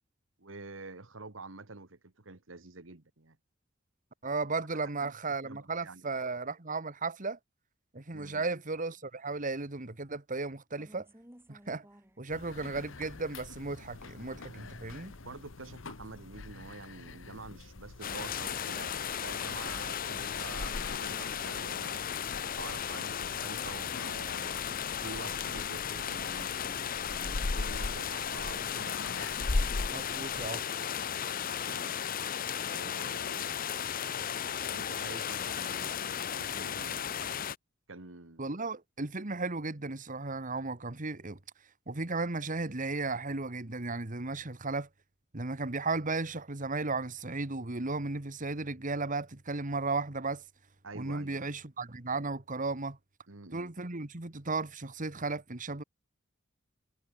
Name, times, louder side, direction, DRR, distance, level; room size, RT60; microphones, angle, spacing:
voice 1, 0.4-3.4 4.6-4.7 5.0-5.1 5.4-6.2 8.1-8.6 14.5-14.8 15.2-19.0 19.2-22.0 22.4-24.6 25.0-29.3 31.2-32.1 32.7-33.6 34.7-37.2 37.9-38.5 44.4-44.5 50.8-51.5 53.3-53.7, right 3 dB, 75° right, 1.8 m, -48 dB
voice 2, 4.2-7.4 7.9-11.1 11.5-11.8 12.2-15.1 29.9-30.6 38.4-41.4 41.9-44.9 45.3-50.4 50.9-53.0 53.5-55.8, right 3 dB, 40° right, 1.7 m, -35 dB
sound 1, 10.8-28.3, right 1 dB, 10° right, 5.0 m, -64 dB
sound 2, 12.3-30.5, left 2 dB, 75° left, 1.1 m, -41 dB
sound 3, 18.0-37.5, left 8 dB, 45° left, 0.7 m, -35 dB
head